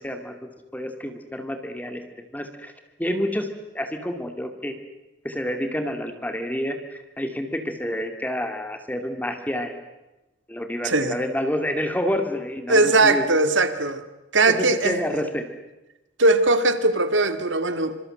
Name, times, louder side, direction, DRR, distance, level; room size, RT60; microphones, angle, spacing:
voice 1, 0.0-2.0 2.3-2.7 3.0-3.5 3.7-4.8 5.2-9.7 10.5-13.2 14.5-15.4, equal, 10° left, 6 dB, 2.4 m, -28 dB
voice 2, 10.8-11.2 12.7-14.0 14.3-15.0 16.2-18.0, right 2 dB, 90° right, 10 dB, 2.1 m, -20 dB
26.0 x 26.0 x 7.8 m, 1.0 s
head